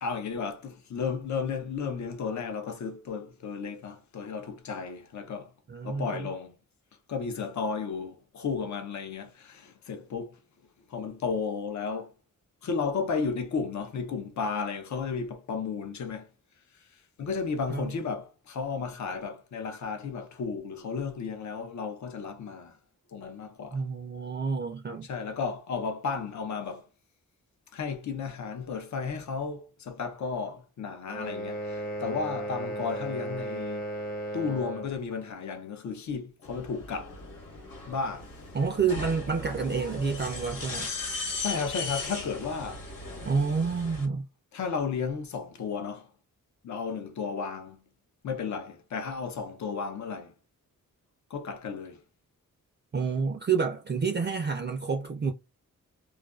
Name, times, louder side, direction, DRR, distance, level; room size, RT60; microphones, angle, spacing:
voice 1, 0.0-5.5 5.8-6.6 7.1-10.4 10.9-12.1 12.6-16.3 17.2-22.8 23.1-23.8 25.0-26.9 27.7-33.8 34.3-37.2 37.9-38.3 41.4-42.8 44.5-46.1 46.6-47.8 48.2-50.3 51.3-52.0, left 5 dB, 60° left, 0.6 m, -33 dB
voice 2, 5.7-6.3 17.7-17.9 23.7-25.1 38.5-40.9 43.2-44.3 52.9-55.3, right 5 dB, 30° right, 0.4 m, -29 dB
sound 1, 31.1-35.0, right 1 dB, 25° left, 0.8 m, -35 dB
sound 2, 36.4-44.0, left 3 dB, 85° left, 1.3 m, -38 dB
2.4 x 2.2 x 2.3 m
wide cardioid pair, 90°, 33 cm